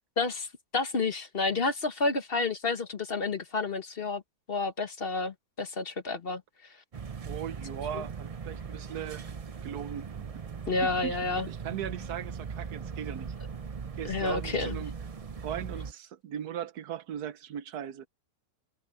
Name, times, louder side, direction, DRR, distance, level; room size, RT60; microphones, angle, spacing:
voice 1, 0.2-0.5 0.7-4.2 4.5-6.4 10.7-11.5 14.0-14.8, left 3 dB, 40° left, 1.3 m, -30 dB
sound 1, 6.9-15.9, right 6 dB, 45° right, 0.4 m, -39 dB
voice 2, 7.3-9.3 9.6-10.1 10.9-11.2 11.5-13.3 14.0-14.9 15.4-18.1, right 9 dB, 80° right, 1.4 m, -38 dB
omnidirectional pair, 1.7 m